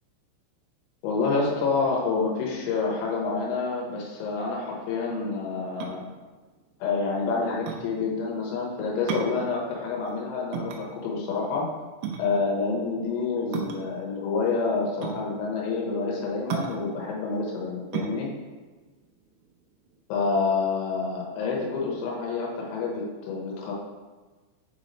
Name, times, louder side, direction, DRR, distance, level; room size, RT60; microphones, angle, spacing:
voice 1, 1.0-6.0 6.8-11.7 12.2-18.3 20.1-23.7, left 4 dB, 85° left, -3 dB, 3.9 m, -28 dB
sound 1, 5.8-20.0, right 7 dB, 90° right, 3.4 m, -36 dB
8.5 x 3.2 x 4.0 m, 1.3 s
omnidirectional pair, 5.9 m